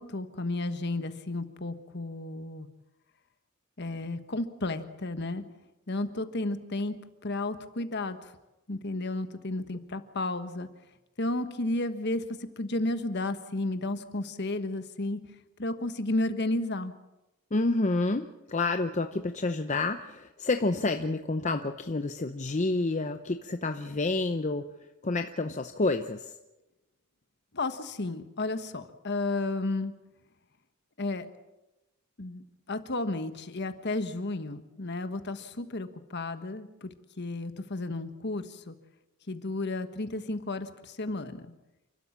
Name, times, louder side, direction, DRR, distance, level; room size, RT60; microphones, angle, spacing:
voice 1, 0.0-2.7 3.8-5.4 5.9-7.0 7.2-8.2 8.7-10.7 11.2-12.2 12.6-15.2 15.6-16.9 27.5-29.9 31.0-31.2 32.2-38.8 39.3-41.5, left 2 dB, 50° left, 10 dB, 1.4 m, -32 dB
voice 2, 17.5-24.7 25.0-26.4, left 2 dB, 35° left, 7 dB, 0.7 m, -29 dB
29.0 x 12.5 x 7.4 m, 1.0 s
head